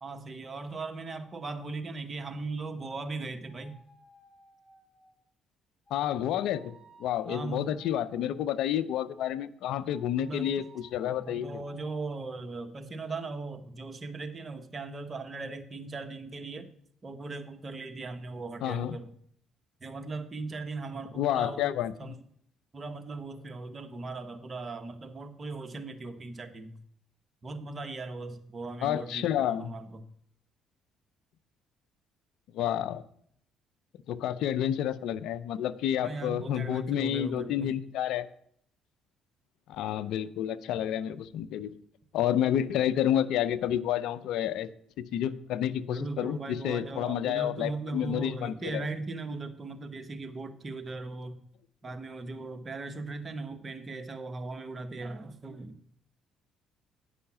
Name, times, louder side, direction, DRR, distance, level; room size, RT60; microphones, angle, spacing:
voice 1, 0.0-3.8 7.3-7.7 10.2-10.6 11.3-16.7 17.0-19.1 19.8-22.2 22.7-26.8 27.4-30.0 36.0-37.7 45.9-51.4 51.8-55.8, right 3 dB, 35° right, 7 dB, 1.1 m, -38 dB
sound 1, 3.5-5.2 5.9-8.8 9.7-12.3, right 1 dB, 15° left, 3.1 m, -59 dB
voice 2, 5.9-6.7 7.0-11.6 18.6-19.0 21.1-22.1 28.8-29.7 32.5-33.0 34.1-38.3 39.7-41.7 42.1-44.7 45.0-48.8, left 11 dB, 75° left, 14 dB, 0.5 m, -30 dB
9.8 x 5.6 x 5.8 m, 0.65 s
supercardioid pair, 75°, 0 cm